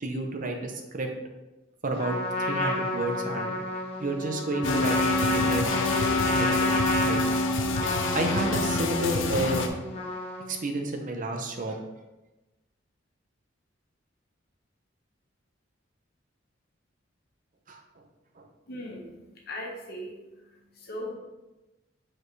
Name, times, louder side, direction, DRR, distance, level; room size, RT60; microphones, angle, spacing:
voice 1, 0.0-1.1 1.8-2.2 2.5-3.5 4.0-5.6 6.4-7.2 8.1-9.6 10.5-11.8 17.7-17.8 18.4-18.5, right 2 dB, 45° right, 3 dB, 0.7 m, -30 dB
Trumpet, 2.0-10.6, left 2 dB, 30° left, 1.1 m, -30 dB
sound 1, 4.6-9.7, left 2 dB, 80° left, 0.6 m, -27 dB
voice 2, 18.7-21.1, left 1 dB, 55° left, -1 dB, 1.3 m, -39 dB
7.2 x 4.3 x 3.2 m, 1.0 s
head